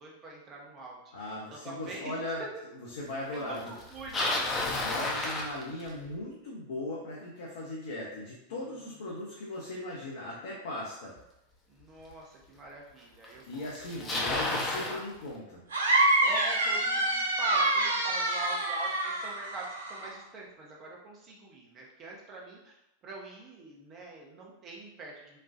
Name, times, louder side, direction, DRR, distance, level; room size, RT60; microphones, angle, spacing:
voice 1, 0.0-1.1 1.5-2.0 3.3-4.6 11.7-14.3 14.7-15.0 16.2-22.7 23.0-25.4, right 2 dB, 30° right, -2 dB, 0.9 m, -44 dB
voice 2, 1.1-2.4 2.7-3.7 4.8-11.1 13.4-15.6, left 2 dB, 60° left, -5 dB, 0.8 m, -38 dB
Bicycle, 3.8-6.1 11.2-11.3 12.1-12.2 13.2-13.3 13.5-15.0, left 2 dB, 20° left, 0.7 m, -31 dB
sound 1, 15.7-20.1, right 2 dB, 70° right, 0.6 m, -27 dB
4.2 x 2.3 x 2.5 m, 0.87 s
figure-of-eight pair, 90°, 0 cm